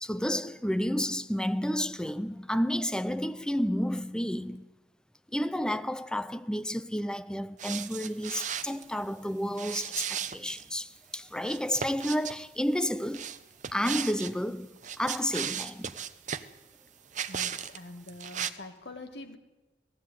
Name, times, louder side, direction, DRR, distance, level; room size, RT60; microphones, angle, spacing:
voice 1, 0.0-4.7 5.3-13.3 13.7-15.9, equal, 5° left, 0.6 m, -31 dB
sound 1, 7.6-8.8 9.5-10.7 11.4-12.4 13.1-14.3 14.8-16.5 17.1-17.8 18.1-18.5, right 8 dB, 45° right, 0.9 m, -36 dB
voice 2, 17.3-19.4, left 2 dB, 70° left, 2.0 m, -44 dB
18.5 x 15.5 x 9.2 m
head